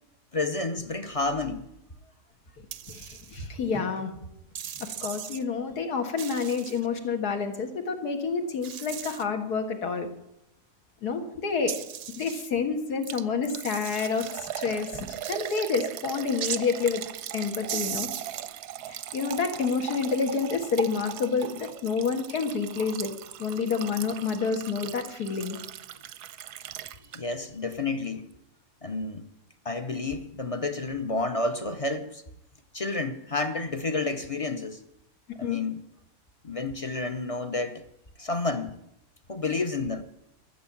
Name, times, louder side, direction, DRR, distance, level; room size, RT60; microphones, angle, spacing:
voice 1, 0.3-1.7 27.1-28.3 28.8-29.3 29.6-32.2 32.7-34.8 35.4-35.8 36.4-37.8 38.2-38.8 39.3-40.0, left 3 dB, 35° left, 0.6 m, -30 dB
sound 1, 2.7-3.5 4.5-5.4 6.2-6.9 8.6-9.2 11.7-12.5 13.6-14.3 15.2-15.6 16.4-16.6 17.7-18.4, right 9 dB, 60° right, 0.6 m, -37 dB
voice 2, 2.9-4.1 4.8-10.1 11.0-11.8 12.2-17.0 17.3-18.1 18.9-23.1 23.4-25.6 35.4-35.6, left 5 dB, 80° left, 2.2 m, -29 dB
Liquid, 13.0-27.4 27.7-27.8 28.3-28.4, right 11 dB, 85° right, 1.2 m, -39 dB
14.0 x 7.1 x 8.6 m
omnidirectional pair, 1.7 m